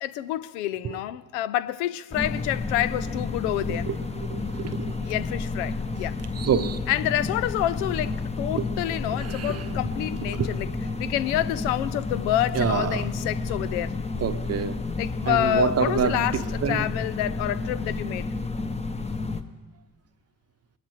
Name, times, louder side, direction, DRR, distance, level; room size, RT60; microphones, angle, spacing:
voice 1, 0.0-3.9 5.0-6.2 6.9-10.7 11.0-14.0 15.0-18.3, left 13 dB, 65° left, 0.6 m, -28 dB
sound 1, 2.1-19.4, left 3 dB, 15° left, 1.0 m, -31 dB
voice 2, 4.2-5.0 6.4-6.8 8.5-8.6 9.2-9.6 10.3-10.5 12.5-13.0 14.2-14.8 15.3-16.8, right 7 dB, 35° right, 0.9 m, -27 dB
22.0 x 13.0 x 3.2 m
figure-of-eight pair, 45°, 42 cm